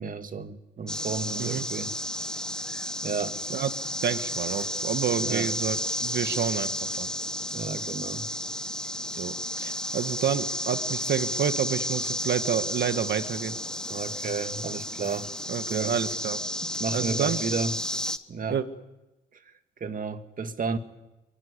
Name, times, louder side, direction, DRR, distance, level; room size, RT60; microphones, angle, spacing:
voice 1, 0.0-1.9 3.0-3.4 5.2-5.5 7.5-8.3 13.9-15.3 15.7-15.9 16.8-17.8 18.3-18.6 19.8-20.8, right 4 dB, 45° right, 8 dB, 2.1 m, -32 dB
sound 1, 0.9-18.2, left 1 dB, 5° left, 1.3 m, -32 dB
voice 2, 4.0-6.7 7.0-7.1 9.2-13.6 15.5-16.4 16.9-17.4 18.5-18.6, right 8 dB, 60° right, 10 dB, 1.6 m, -29 dB
25.5 x 24.0 x 8.3 m, 0.98 s
cardioid pair, 90°, 20 cm